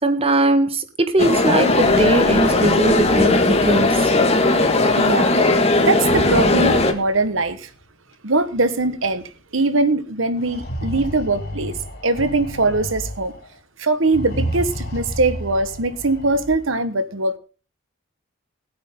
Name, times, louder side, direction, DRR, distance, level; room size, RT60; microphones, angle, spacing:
voice 1, 0.0-4.1, right 2 dB, 30° right, 1.5 m, -20 dB
sound 1, 1.2-6.9, left 2 dB, 30° left, 1.8 m, -17 dB
sound 2, 1.7-4.5 5.8-7.5 8.5-8.6 9.0-9.1 10.4-13.5 14.0-16.6, equal, 50° left, 3.1 m, -32 dB
voice 2, 5.0-5.4 5.9-7.7 8.2-9.2 9.5-11.8 12.0-13.3 13.8-17.4, right 2 dB, 70° right, 1.4 m, -21 dB
20.0 x 8.7 x 3.8 m
head